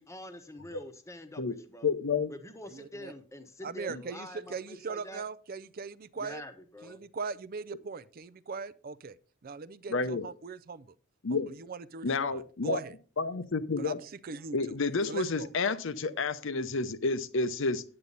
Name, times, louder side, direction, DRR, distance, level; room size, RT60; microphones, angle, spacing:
voice 1, 0.0-1.9 2.3-5.2 6.1-7.1, left 1 dB, 15° left, 1.0 m, -46 dB
voice 2, 1.8-2.3 3.9-4.0 9.9-10.3 11.2-11.5 12.0-12.8 13.2-14.0 14.5-17.8, left 4 dB, 65° left, 0.7 m, -30 dB
voice 3, 2.7-3.1 3.6-6.4 6.8-9.2 9.4-10.9 11.5-12.9 13.8-14.7 15.1-15.5, right 5 dB, 45° right, 0.4 m, -40 dB
9.5 x 8.8 x 4.0 m
head